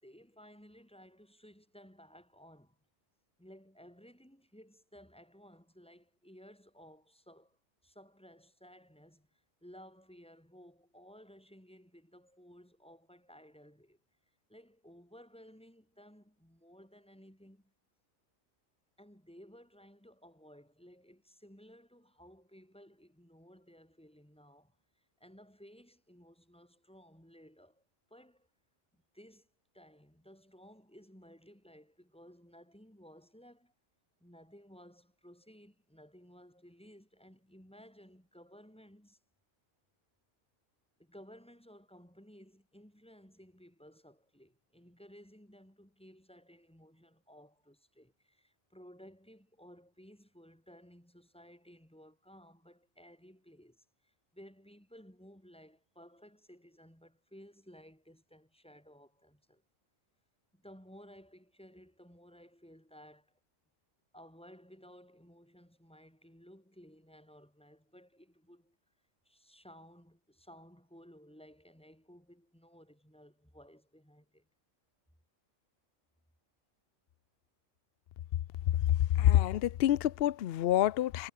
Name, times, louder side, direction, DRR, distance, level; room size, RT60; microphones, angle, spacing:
voice 1, 0.0-2.8 3.4-14.0 14.5-17.7 19.0-27.8 28.1-28.5 28.9-29.5 29.7-33.7 34.2-39.2 41.0-59.6 60.5-63.4 64.1-68.8 69.3-74.5, equal, 5° left, 5.5 m, -57 dB
voice 2, 79.2-81.3, left 12 dB, 65° left, 0.6 m, -27 dB
omnidirectional pair, 1.4 m